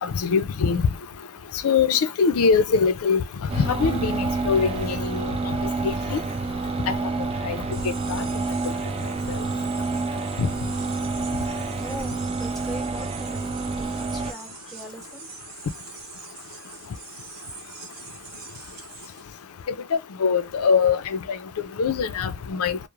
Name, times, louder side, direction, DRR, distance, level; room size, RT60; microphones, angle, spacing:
voice 1, 0.0-0.8 1.6-3.2 3.6-5.6 5.8-6.2 6.9-7.0 7.4-7.6 8.1-8.2 9.3-9.4 10.4-10.5 20.2-21.2 21.8-22.8, left 5 dB, 80° left, 0.4 m, -22 dB
sound 1, 3.5-14.3, right 3 dB, 25° right, 0.3 m, -28 dB
sound 2, 7.7-19.2, right 5 dB, 45° right, 0.9 m, -43 dB
voice 2, 11.7-15.3, right 1 dB, ahead, 0.9 m, -40 dB
3.0 x 2.1 x 2.3 m
head